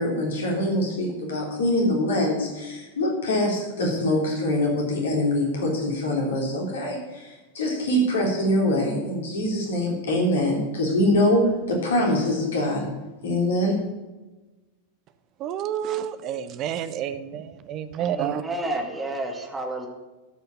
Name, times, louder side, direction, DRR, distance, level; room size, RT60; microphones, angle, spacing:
voice 1, 0.0-12.9 13.2-13.8, left 1 dB, 60° left, 0 dB, 3.4 m, -24 dB
voice 2, 15.4-18.4, right 10 dB, 35° right, 12 dB, 0.8 m, -29 dB
voice 3, 18.0-19.9, right 1 dB, 10° right, 3 dB, 1.9 m, -30 dB
13.0 x 5.6 x 7.3 m, 1.1 s
figure-of-eight pair, 90°, 0 cm